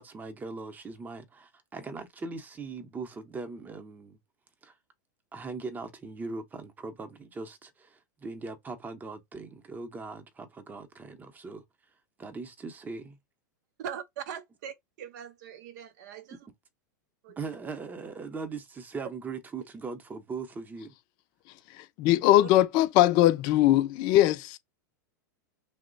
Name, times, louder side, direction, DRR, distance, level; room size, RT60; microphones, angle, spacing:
voice 1, 0.0-4.2 4.6-4.7 5.3-11.6 12.2-13.2 17.4-20.9, right 4 dB, 15° right, 0.7 m, -40 dB
voice 2, 13.8-16.4 17.2-17.4 22.4-22.5, right 8 dB, 65° right, 0.5 m, -41 dB
voice 3, 21.8-24.6, left 14 dB, 45° left, 0.5 m, -21 dB
2.9 x 2.0 x 3.9 m
hypercardioid pair, 120°, 10 cm